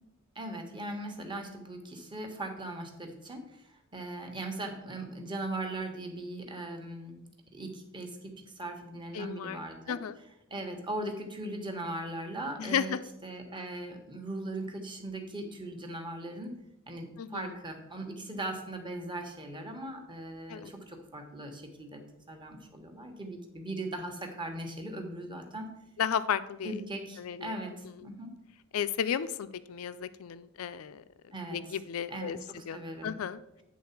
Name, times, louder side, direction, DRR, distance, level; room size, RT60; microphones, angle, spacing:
voice 1, 0.3-7.2 7.5-10.0 10.5-12.9 13.2-16.6 16.9-25.7 26.6-28.3 31.3-31.6 32.1-33.2, right 1 dB, 20° right, 3 dB, 1.1 m, -39 dB
voice 2, 9.1-9.6 9.9-10.2 12.6-13.0 17.2-17.5 20.5-20.7 26.0-26.7 27.2-27.6 28.7-31.0 31.5-32.4 32.7-33.4, left 8 dB, 75° left, 13 dB, 0.4 m, -33 dB
9.5 x 3.8 x 5.8 m, 0.84 s
head